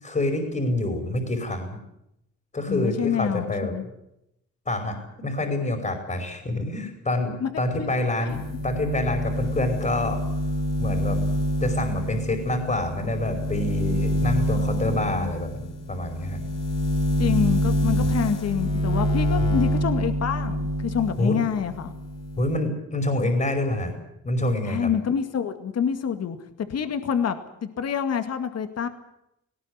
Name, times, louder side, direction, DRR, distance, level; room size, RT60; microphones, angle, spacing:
voice 1, 0.0-1.8 2.5-3.7 4.7-10.2 10.8-11.2 11.6-16.4 19.4-19.6 21.2-21.4 22.4-23.9 24.2-24.9, left 2 dB, 25° left, 5 dB, 5.3 m, -27 dB
voice 2, 2.7-3.9 7.4-7.5 7.8-7.9 8.2-8.4 14.6-15.3 17.2-21.9 24.6-28.9, left 7 dB, 55° left, 9 dB, 2.1 m, -27 dB
sound 1, 8.3-21.2 21.6-22.6, equal, 85° left, 4.5 m, -26 dB
19.0 x 18.0 x 9.9 m, 0.83 s
cardioid pair, 90°, 30 cm